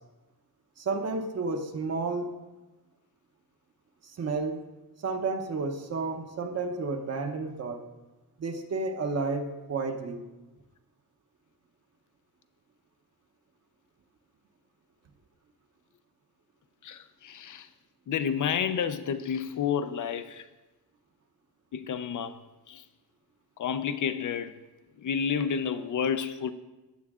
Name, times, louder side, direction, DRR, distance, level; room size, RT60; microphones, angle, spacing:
voice 1, 0.8-2.3 4.0-4.6 5.0-7.8 8.4-10.2, right 3 dB, 40° right, 1.0 m, -31 dB
voice 2, 16.8-17.7 18.1-20.5 21.7-22.9 23.6-24.6 25.0-26.5, left 7 dB, 55° left, 0.6 m, -30 dB
15.5 x 9.3 x 3.6 m
wide cardioid pair, 180°, 37 cm